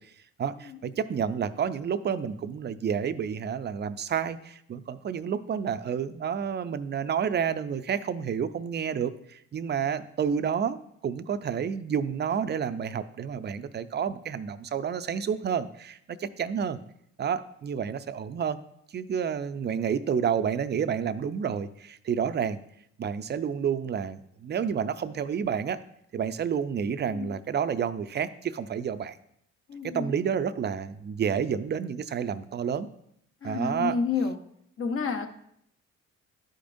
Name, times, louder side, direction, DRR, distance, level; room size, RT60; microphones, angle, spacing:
voice 1, 0.4-16.8 17.2-18.6 18.9-22.6 23.0-25.8 26.1-29.2 29.8-32.9 33.4-34.0, right 7 dB, 35° right, 12 dB, 0.5 m, -30 dB
voice 2, 29.7-30.1 33.4-34.4 34.8-35.3, left 4 dB, 45° left, 5 dB, 0.8 m, -29 dB
12.5 x 5.1 x 2.6 m, 0.74 s
cardioid pair, 90°, 30 cm